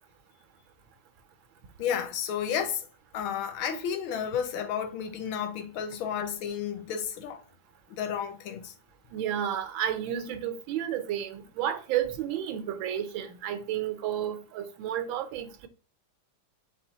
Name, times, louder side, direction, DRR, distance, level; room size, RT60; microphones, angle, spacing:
voice 1, 1.8-2.8 3.1-7.4 7.9-8.7, left 8 dB, 90° left, 1.6 m, -32 dB
voice 2, 9.1-15.7, right 10 dB, 80° right, 1.4 m, -31 dB
4.3 x 3.6 x 2.7 m
omnidirectional pair, 2.2 m